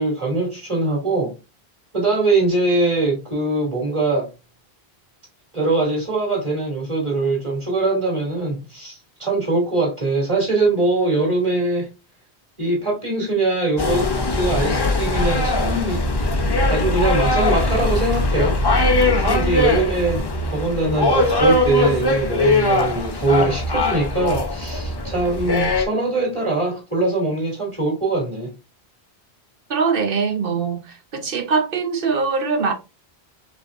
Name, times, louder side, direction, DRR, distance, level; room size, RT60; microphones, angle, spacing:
voice 1, 0.0-1.3 1.9-4.3 5.5-11.9 12.6-18.6 19.0-20.2 20.5-28.5, right 2 dB, 30° right, 2.5 m, -22 dB
sound 1, 13.8-25.9, left 2 dB, 30° left, 0.5 m, -20 dB
voice 2, 29.7-32.7, right 5 dB, 60° right, 1.1 m, -22 dB
5.4 x 3.3 x 2.5 m
omnidirectional pair, 1.1 m